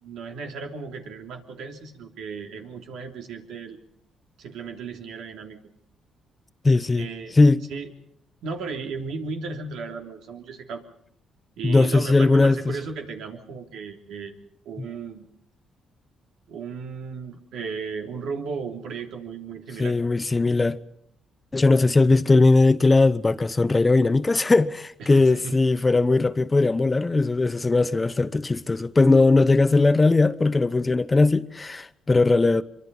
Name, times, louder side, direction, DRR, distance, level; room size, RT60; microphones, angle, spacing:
voice 1, 0.0-3.8 4.4-5.6 6.9-7.4 7.7-7.9 8.4-10.8 11.6-14.3 14.6-15.3 16.5-20.0 25.0-25.6, right 5 dB, 80° right, 3.2 m, -35 dB
voice 2, 6.6-7.1 7.4-7.6 11.6-12.7 19.8-20.8 21.5-32.6, left 3 dB, 25° left, 0.9 m, -19 dB
25.0 x 24.0 x 5.6 m
cardioid pair, 90°, 0 cm